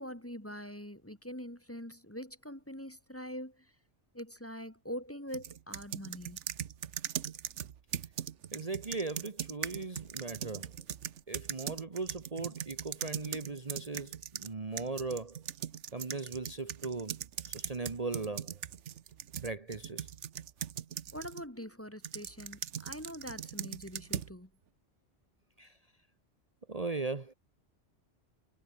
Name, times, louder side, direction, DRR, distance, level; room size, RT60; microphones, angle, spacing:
voice 1, 0.0-3.7 4.1-6.4 21.1-24.5, equal, 10° left, 2.0 m, -43 dB
sound 1, 5.3-14.5 14.8-21.4 22.0-24.3, right 9 dB, 80° right, 1.2 m, -40 dB
voice 2, 8.5-10.7 11.3-15.4 15.9-17.2 17.5-18.6 19.4-20.1 25.6-25.8 26.7-27.3, right 3 dB, 30° right, 1.3 m, -38 dB
omnidirectional pair, 1.2 m